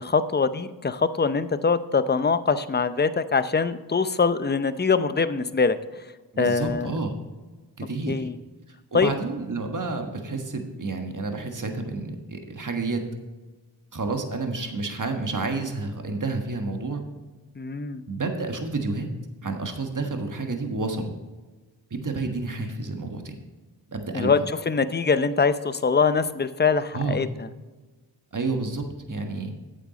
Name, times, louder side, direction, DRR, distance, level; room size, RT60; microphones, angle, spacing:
voice 1, 0.0-6.0 6.4-6.9 8.1-8.4 8.9-9.2 17.6-18.0 24.1-27.5, left 5 dB, 25° left, 12 dB, 0.6 m, -23 dB
voice 2, 6.3-7.1 7.8-8.2 8.9-13.0 13.9-17.0 18.1-19.1 19.4-21.1 21.9-23.4 23.9-24.4 26.9-27.2 28.3-29.5, right 3 dB, 45° right, 5 dB, 1.5 m, -30 dB
8.8 x 7.4 x 4.1 m, 1.3 s
cardioid pair, 45°, 44 cm